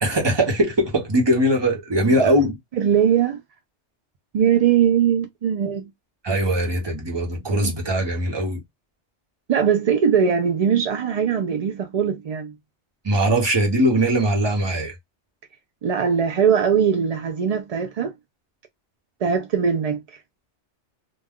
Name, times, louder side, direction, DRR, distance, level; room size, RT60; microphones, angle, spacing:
voice 1, 0.0-2.5 6.2-8.6 13.0-14.9, right 1 dB, 25° right, 0.8 m, -21 dB
voice 2, 2.8-3.4 4.3-5.9 6.3-6.4 7.6-7.7 9.5-12.5 15.8-18.1 19.2-20.0, right 7 dB, 65° right, 0.3 m, -20 dB
2.3 x 2.2 x 3.5 m
omnidirectional pair, 1.2 m